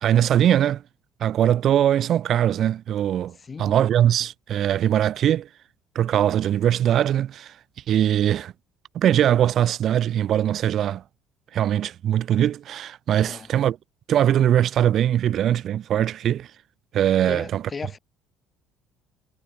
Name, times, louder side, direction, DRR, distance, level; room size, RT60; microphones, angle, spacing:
voice 1, 0.0-0.8 1.2-5.5 5.9-7.5 7.9-8.5 8.9-11.0 11.5-13.8 14.1-16.5 16.9-17.6, right 10 dB, 45° right, 3.0 m, -21 dB
voice 2, 3.4-3.8 13.2-13.5 17.3-18.0, left 5 dB, 25° left, 3.5 m, -36 dB
cardioid pair, 145°, 0 cm